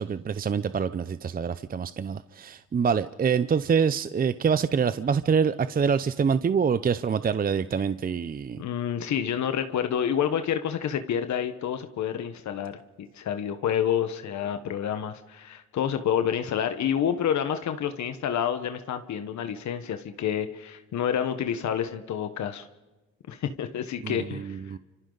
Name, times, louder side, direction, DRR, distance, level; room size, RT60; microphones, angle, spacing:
voice 1, 0.0-8.6 24.0-24.8, right 6 dB, 30° right, 14 dB, 0.6 m, -26 dB
voice 2, 8.6-22.7 23.3-24.6, left 9 dB, 70° left, 9 dB, 1.3 m, -28 dB
28.5 x 25.5 x 4.0 m, 1.1 s
cardioid pair, 90°, 30 cm